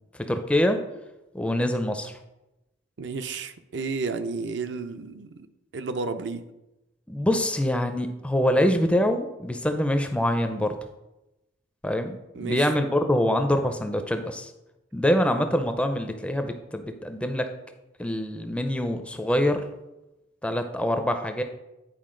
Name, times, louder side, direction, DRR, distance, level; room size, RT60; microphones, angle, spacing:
voice 1, 0.3-0.8 1.3-2.1 7.1-10.8 11.8-14.5 14.9-17.4 18.0-19.6 20.4-21.4, left 1 dB, 5° left, 7 dB, 0.4 m, -25 dB
voice 2, 3.0-5.5 5.7-6.5 12.3-12.7, right 4 dB, 65° right, 9 dB, 0.5 m, -32 dB
9.3 x 4.5 x 3.7 m, 0.96 s
head